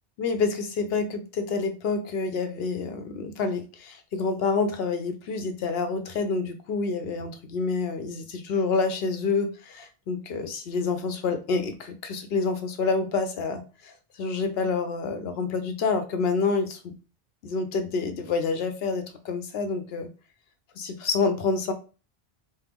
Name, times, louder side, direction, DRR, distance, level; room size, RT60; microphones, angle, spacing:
voice 1, 0.2-16.9 17.4-20.1 20.8-21.7, left 4 dB, 75° left, 8 dB, 0.9 m, -28 dB
4.4 x 2.1 x 3.5 m, 0.34 s
omnidirectional pair, 1.0 m